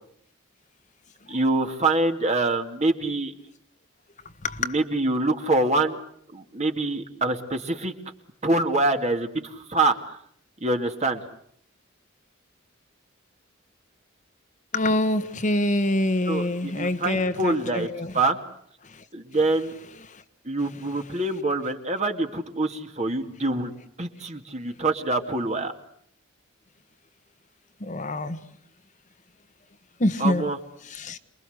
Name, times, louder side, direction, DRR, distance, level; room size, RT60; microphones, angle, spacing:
voice 1, 1.3-3.3 4.6-6.0 6.3-7.9 8.4-10.2 10.6-11.2 16.3-17.9 18.1-18.4 19.1-19.7 20.5-23.7 24.0-25.7 30.2-30.6, right 2 dB, 35° right, 2.4 m, -25 dB
voice 2, 14.7-18.1 18.8-19.0 20.1-20.2 27.8-28.4 30.0-30.4 30.8-31.2, left 1 dB, 40° left, 1.4 m, -25 dB
27.5 x 22.0 x 8.0 m
head